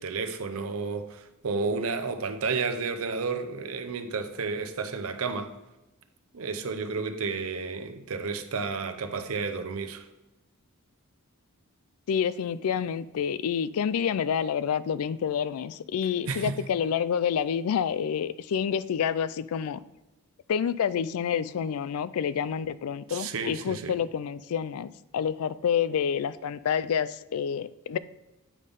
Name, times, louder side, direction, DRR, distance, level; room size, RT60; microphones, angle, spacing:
voice 1, 0.0-5.5 6.3-10.1 16.3-16.6 23.1-24.0, right 4 dB, 65° right, 0.6 m, -31 dB
voice 2, 12.1-19.8 20.5-28.0, left 7 dB, 75° left, 0.3 m, -28 dB
8.5 x 5.3 x 3.5 m
head